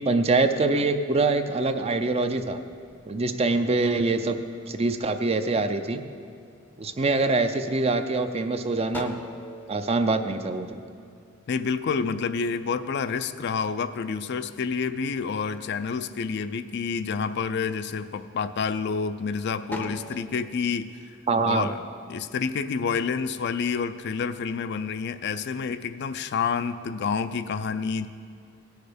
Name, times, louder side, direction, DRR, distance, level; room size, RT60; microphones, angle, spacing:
voice 1, 0.1-2.6 3.1-4.4 4.7-6.0 6.8-9.2 9.7-10.8 21.3-21.7, right 3 dB, 30° right, 8 dB, 0.5 m, -24 dB
sound 1, 2.1-3.9 4.4-5.1 5.6-6.2 6.5-7.5 8.0-8.1 8.4-11.3 11.7-14.0 14.3-15.4 15.7-16.4 16.9-17.1 17.6-19.2 19.6-20.2, left 1 dB, 10° left, 0.6 m, -41 dB
voice 2, 11.5-21.2 21.5-21.8 22.1-28.1, left 5 dB, 55° left, 11 dB, 0.4 m, -28 dB
17.5 x 6.4 x 5.1 m, 2.3 s
head